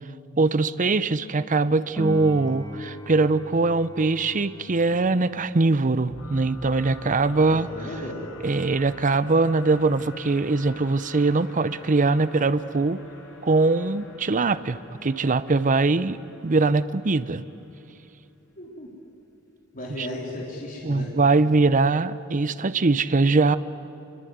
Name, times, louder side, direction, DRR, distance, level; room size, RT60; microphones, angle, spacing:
voice 1, 0.4-7.7 8.4-13.0 13.4-16.2 16.4-17.4 20.0-20.1 20.8-23.6, right 3 dB, 35° right, 14 dB, 0.6 m, -22 dB
Piano, 2.0-12.4 19.9-20.0, left 1 dB, 15° left, 2.0 m, -42 dB
sound 1, 6.1-17.9, left 3 dB, 60° left, 4.8 m, -47 dB
voice 2, 7.5-8.3 18.6-18.9 19.7-21.1, left 1 dB, 40° left, -3 dB, 3.7 m, -35 dB
27.0 x 22.5 x 9.4 m, 2.8 s
head